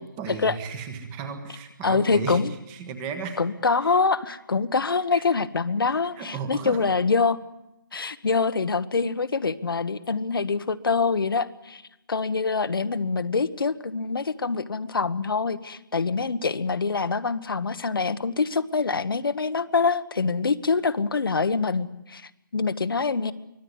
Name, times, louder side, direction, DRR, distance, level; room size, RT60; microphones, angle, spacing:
voice 1, 0.0-2.4 2.7-3.4 3.8-3.9 4.3-4.4 5.1-5.4 5.8-6.8, right 5 dB, 10° right, 8 dB, 1.3 m, -35 dB
voice 2, 1.8-2.5 3.4-7.4 7.9-11.8 12.1-23.3, left 4 dB, 85° left, 12 dB, 1.3 m, -25 dB
24.0 x 17.5 x 9.6 m, 0.90 s
hypercardioid pair, 175°, 12 cm